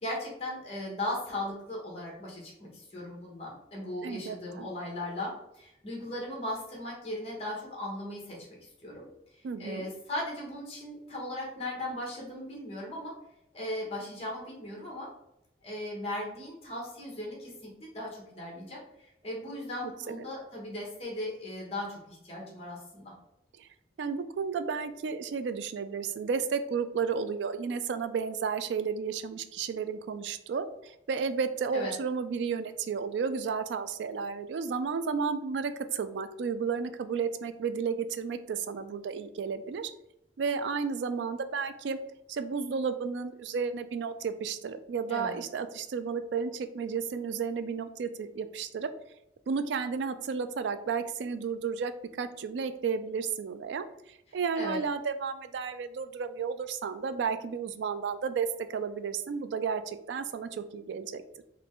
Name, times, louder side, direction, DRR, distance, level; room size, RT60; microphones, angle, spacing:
voice 1, 0.0-8.5 8.8-9.0 9.3-13.1 13.5-15.1 15.6-23.1 31.7-31.9 45.1-45.3 54.5-54.8, left 1 dB, 35° left, -2 dB, 1.3 m, -37 dB
voice 2, 4.0-4.7 9.4-9.9 19.8-20.3 23.6-23.7 24.0-39.9 40.4-42.0 42.3-48.9 49.5-51.9 52.2-61.4, right 5 dB, 85° right, 10 dB, 0.3 m, -32 dB
3.9 x 2.2 x 3.6 m, 0.82 s
head